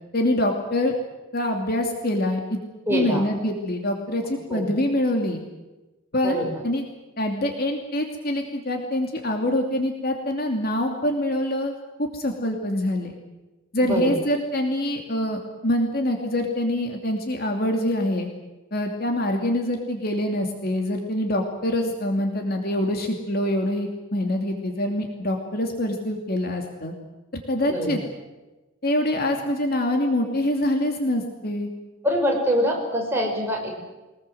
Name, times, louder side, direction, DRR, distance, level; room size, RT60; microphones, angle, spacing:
voice 1, 0.1-0.9 1.3-2.6 2.9-5.4 6.1-6.8 7.2-13.2 13.7-18.3 18.7-26.9 27.5-28.0 28.8-31.7, left 1 dB, 45° left, 3 dB, 2.7 m, -25 dB
voice 2, 2.9-3.2 4.5-4.7 6.2-6.6 13.8-14.1 27.7-28.1 32.0-33.7, equal, 10° right, 0 dB, 5.9 m, -24 dB
23.5 x 20.5 x 7.8 m, 1.1 s
head